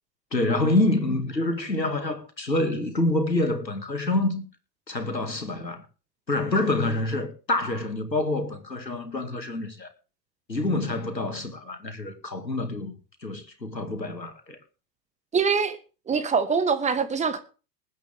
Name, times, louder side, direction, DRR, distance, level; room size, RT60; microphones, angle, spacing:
voice 1, 0.3-4.5 4.9-5.8 6.3-9.9 10.5-12.9 13.2-14.6, left 2 dB, 85° left, 2.4 m, -27 dB
voice 2, 15.3-15.8 16.1-17.4, right 5 dB, 15° right, 1.5 m, -23 dB
20.5 x 9.3 x 3.6 m
figure-of-eight pair, 95°, 49 cm